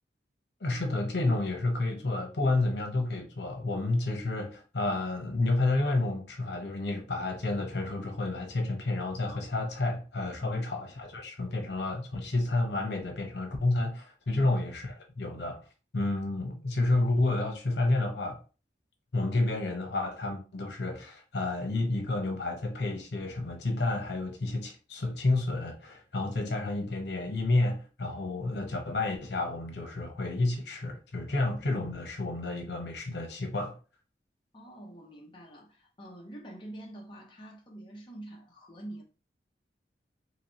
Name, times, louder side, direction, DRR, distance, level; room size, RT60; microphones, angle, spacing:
voice 1, 0.6-15.6 15.9-18.4 19.1-33.8, left 2 dB, 75° left, 0.8 m, -30 dB
voice 2, 10.4-10.7 14.3-14.5 34.5-39.0, right 1 dB, 25° left, 0.7 m, -46 dB
3.0 x 2.9 x 2.9 m
head